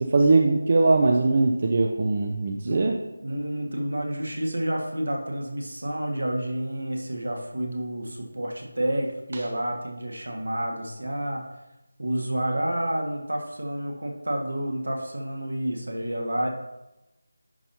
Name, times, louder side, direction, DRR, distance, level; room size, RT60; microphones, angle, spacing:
voice 1, 0.0-3.0, right 3 dB, 40° right, 3 dB, 0.6 m, -21 dB
voice 2, 3.2-11.4 12.0-16.5, right 1 dB, 80° right, 1 dB, 1.7 m, -29 dB
10.5 x 5.6 x 2.8 m, 0.97 s
figure-of-eight pair, 165°, 0 cm